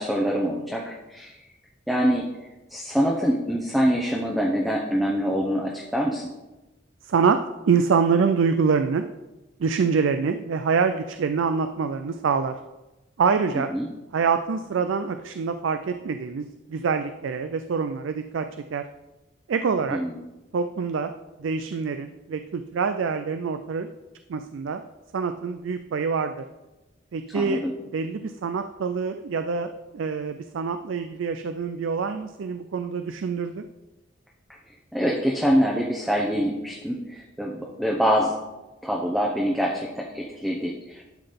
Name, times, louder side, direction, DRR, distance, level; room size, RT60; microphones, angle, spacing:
voice 1, 0.0-1.4 1.9-2.3 2.7-6.3 13.5-13.9 19.9-20.2 27.3-27.7 34.9-38.3 38.8-41.1, equal, ahead, -3 dB, 0.7 m, -25 dB
voice 2, 7.0-7.4 7.7-9.0 9.6-12.5 13.2-13.7 14.1-18.8 19.5-20.0 20.5-21.1 21.4-23.9 24.3-24.8 25.1-26.4 27.1-27.7 27.9-33.6, right 5 dB, 75° right, 8 dB, 0.4 m, -25 dB
11.5 x 3.9 x 5.2 m, 1.0 s
head